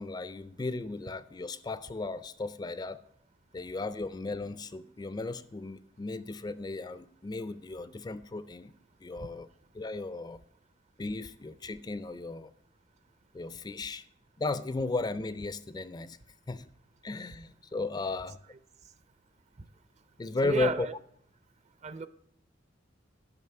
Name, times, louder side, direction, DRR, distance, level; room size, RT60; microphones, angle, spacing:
voice 1, 0.0-3.0 3.5-8.7 9.0-9.5 9.7-10.4 11.0-12.5 13.3-14.0 14.4-16.2 16.5-16.7 17.0-18.4 20.2-20.9, left 3 dB, 20° left, 0.3 m, -35 dB
voice 2, 20.4-20.9 21.8-22.1, right 4 dB, 35° right, 0.5 m, -33 dB
11.0 x 6.1 x 5.6 m
head